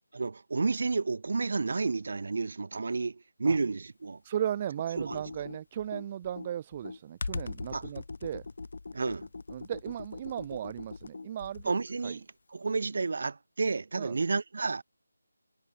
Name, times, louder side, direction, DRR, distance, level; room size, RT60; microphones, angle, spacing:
voice 1, 0.1-4.2 5.0-5.2 7.7-7.8 8.9-9.3 11.7-12.2 12.5-14.8, right 4 dB, 55° right, 0.6 m, -31 dB
voice 2, 4.2-8.5 9.5-12.2 14.0-14.2, right 10 dB, 25° right, 1.2 m, -36 dB
Computer keyboard, 5.0-11.8, left 3 dB, 55° left, 2.0 m, -41 dB
figure-of-eight pair, 160°, 0 cm